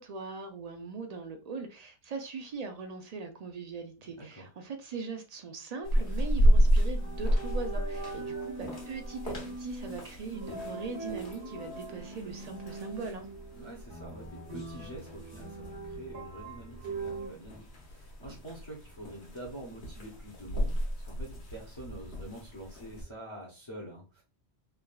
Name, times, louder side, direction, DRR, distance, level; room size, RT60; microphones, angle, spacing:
voice 1, 0.0-13.3, right 4 dB, 60° right, 0.4 m, -40 dB
voice 2, 4.2-4.5 8.1-8.3 13.5-24.2, right 1 dB, 30° left, 0.6 m, -46 dB
sound 1, 5.8-23.0, equal, 75° left, 1.2 m, -32 dB
sound 2, 7.0-17.3, right 3 dB, 75° right, 1.5 m, -42 dB
3.3 x 2.2 x 2.3 m
omnidirectional pair, 1.1 m